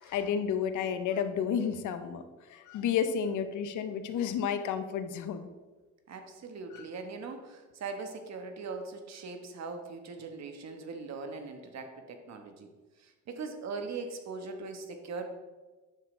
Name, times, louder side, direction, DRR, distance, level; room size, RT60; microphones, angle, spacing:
voice 1, 0.0-5.5 6.7-6.9, left 7 dB, 80° left, 10 dB, 0.8 m, -31 dB
voice 2, 6.1-12.7 13.0-15.3, right 4 dB, 60° right, 6 dB, 1.2 m, -40 dB
9.5 x 6.8 x 3.3 m, 1.3 s
cardioid pair, 90°, 30 cm